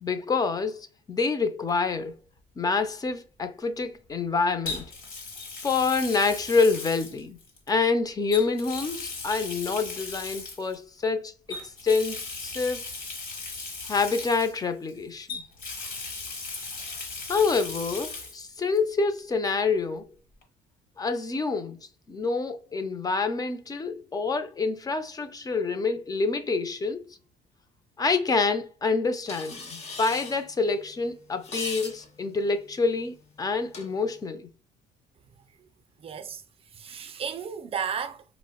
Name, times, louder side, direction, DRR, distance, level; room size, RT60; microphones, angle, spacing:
voice 1, 0.0-2.1 2.6-4.9 5.6-7.4 7.7-12.8 13.8-15.4 17.3-20.1 21.0-21.8 22.1-27.2 28.0-34.5, left 4 dB, 20° left, 0.4 m, -27 dB
Water tap faucet, 1.7-1.9 4.7-7.7 8.3-10.8 11.5-14.9 15.3-18.4 18.7-18.8 20.4-20.5, left 3 dB, 55° left, 1.3 m, -37 dB
sound 1, 29.3-34.2, left 3 dB, 40° left, 0.9 m, -42 dB
voice 2, 36.0-38.4, right 7 dB, 35° right, 0.4 m, -35 dB
4.3 x 2.1 x 2.3 m
cardioid pair, 110°, 17 cm